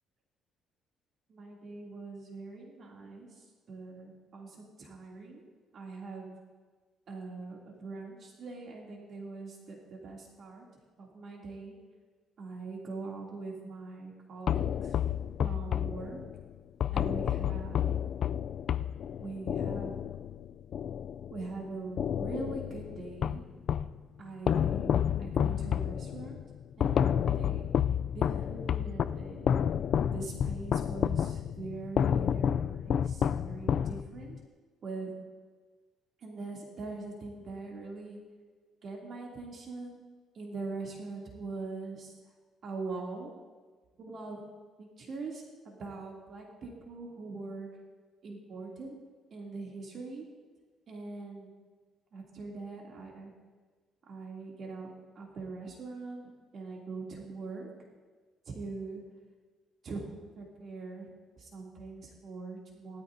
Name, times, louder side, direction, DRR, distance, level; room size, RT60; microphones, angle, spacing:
voice 1, 1.3-5.4 5.7-6.3 7.1-10.6 11.0-11.7 12.4-14.9 15.4-16.2 16.9-18.0 19.2-20.1 21.3-23.4 24.2-26.4 26.8-27.7 28.1-29.5 30.1-34.4 34.8-35.1 36.2-38.2 38.8-40.0 40.3-42.1 42.6-43.3 44.0-44.4 44.8-47.7 48.2-49.0 49.3-50.2 50.9-51.5 52.1-53.3 54.1-57.7 58.5-59.0 59.8-60.1 60.3-61.1 61.4-63.0, right 3 dB, 50° right, -2 dB, 2.7 m, -42 dB
sound 1, 14.5-21.6 22.0-24.0 24.5-34.4, left 9 dB, 55° left, 0.3 m, -30 dB
18.5 x 13.0 x 2.7 m, 1.4 s
cardioid pair, 120°, 0 cm